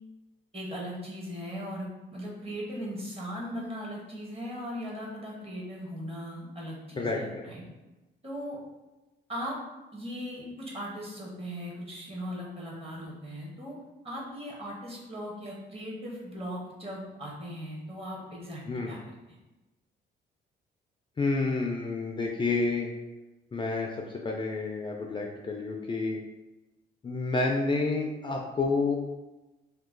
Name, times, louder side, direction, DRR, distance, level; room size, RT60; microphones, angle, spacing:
voice 1, 0.5-7.6 8.2-8.6 9.3-9.6 9.9-13.8 14.0-19.0, equal, 30° right, -3 dB, 1.1 m, -38 dB
voice 2, 7.0-7.5 18.7-19.0 21.2-22.9 23.5-23.9 24.2-26.2 27.0-29.0, left 3 dB, 25° left, 0 dB, 0.3 m, -29 dB
2.9 x 2.2 x 3.7 m, 1.1 s
cardioid pair, 90°, 20 cm